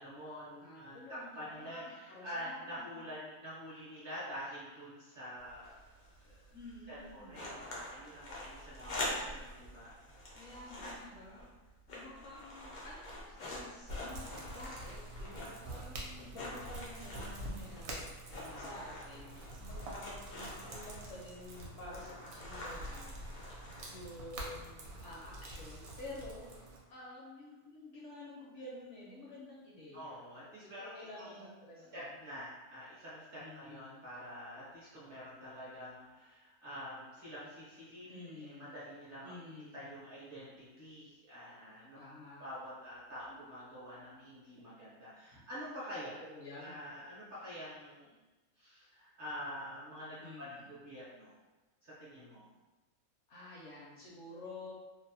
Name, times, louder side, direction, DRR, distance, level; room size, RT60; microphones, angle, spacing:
voice 1, 0.0-5.9 6.2-6.4 6.9-9.9 18.4-18.7 29.9-31.4 31.9-38.1 38.4-42.0 42.4-46.2 46.6-48.2 48.6-51.3 51.8-52.4, equal, 45° right, -9 dB, 0.8 m, -47 dB
voice 2, 0.6-2.9 6.5-7.4 10.3-11.4 11.9-23.2 23.9-26.5 26.9-30.2 30.6-32.1 33.4-34.1 38.1-38.8 39.2-39.9 41.9-42.5 45.3-45.4 46.2-46.9 50.2-50.7 53.3-54.7, left 2 dB, 65° left, -6 dB, 0.8 m, -50 dB
sound 1, 5.4-24.3, left 1 dB, 80° left, 0.4 m, -46 dB
sound 2, 13.9-26.8, right 1 dB, 75° right, 1.0 m, -47 dB
2.7 x 2.0 x 2.6 m, 1.2 s
omnidirectional pair, 1.5 m